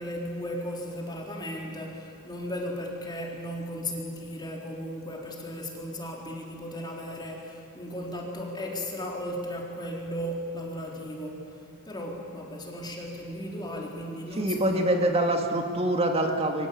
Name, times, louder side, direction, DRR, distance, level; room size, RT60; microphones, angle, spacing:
voice 1, 0.0-11.4 11.8-15.1, equal, 20° left, -1 dB, 3.9 m, -36 dB
voice 2, 14.4-16.7, right 1 dB, 30° right, 3 dB, 2.3 m, -25 dB
28.5 x 23.5 x 8.7 m, 2.4 s
head